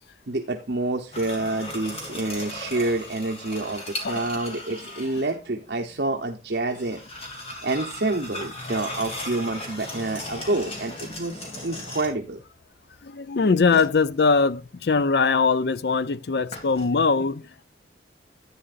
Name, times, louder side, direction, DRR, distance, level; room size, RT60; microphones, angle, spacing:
voice 1, 0.3-7.0 7.6-12.4, right 2 dB, 65° right, 0.9 m, -28 dB
sound 1, 1.1-5.4 6.5-12.3 13.7-14.3 16.5-16.9, left 1 dB, 35° left, 2.7 m, -37 dB
voice 2, 13.0-17.6, left 4 dB, 65° left, 0.5 m, -22 dB
11.0 x 9.1 x 2.5 m
head